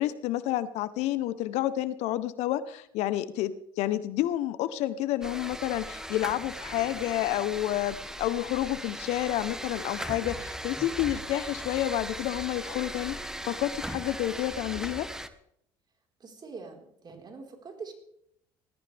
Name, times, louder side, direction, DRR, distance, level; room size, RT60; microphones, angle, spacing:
voice 1, 0.0-15.1, left 13 dB, 70° left, 14 dB, 1.0 m, -30 dB
sound 1, 5.2-15.3, right 1 dB, 5° right, 1.4 m, -38 dB
voice 2, 16.2-17.9, right 4 dB, 35° right, 2 dB, 4.7 m, -44 dB
20.0 x 14.0 x 3.5 m, 0.73 s
hypercardioid pair, 65°, 12 cm